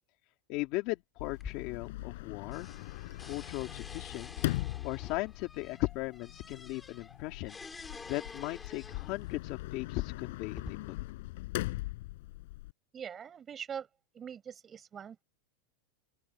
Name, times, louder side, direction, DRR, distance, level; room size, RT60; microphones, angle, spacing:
voice 1, 0.5-2.7 3.2-4.5 4.8-7.6 8.1-11.0, left 20 dB, 40° left, 2.9 m, -37 dB
Sliding door, 1.2-12.7, left 19 dB, 55° left, 7.8 m, -41 dB
sound 1, 1.3-2.2 2.5-9.3 10.1-10.7, left 4 dB, 10° left, 3.8 m, -49 dB
voice 2, 12.9-13.9 14.1-15.2, right 8 dB, 15° right, 5.9 m, -43 dB
open air
supercardioid pair, 170°, 0 cm